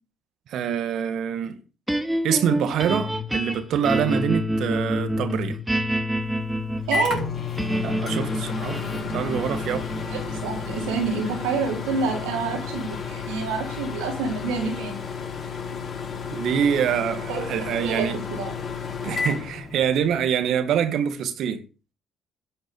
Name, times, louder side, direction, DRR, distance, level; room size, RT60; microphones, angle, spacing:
voice 1, 0.5-1.6 2.2-5.6 7.8-8.8 9.1-9.8 16.3-18.2 19.0-21.6, right 8 dB, 70° right, 1.8 m, -25 dB
sound 1, 1.9-14.2, equal, 5° right, 1.9 m, -29 dB
Microwave oven, 6.2-20.2, left 6 dB, 50° left, 4.6 m, -32 dB
voice 2, 6.9-7.3 10.1-14.9 17.3-17.4 17.8-18.5, right 5 dB, 90° right, 3.9 m, -28 dB
11.5 x 6.5 x 6.9 m
supercardioid pair, 60°, 0 cm